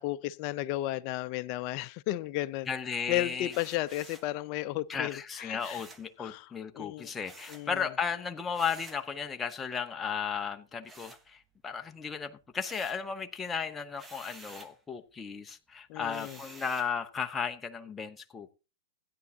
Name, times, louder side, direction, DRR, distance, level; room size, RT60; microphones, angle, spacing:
voice 1, 0.0-2.7 3.1-5.8 6.2-7.1 7.5-7.8 15.9-16.4, left 15 dB, 45° left, 0.6 m, -34 dB
voice 2, 2.7-3.5 4.9-18.5, left 6 dB, 15° left, 0.9 m, -35 dB
sound 1, 3.5-4.3 5.6-6.1 7.2-7.7 8.5-9.1 10.8-11.7 12.1-13.1 13.9-14.8 16.1-17.0, right 2 dB, 10° right, 1.0 m, -51 dB
16.0 x 9.6 x 2.8 m
hypercardioid pair, 125°, 0 cm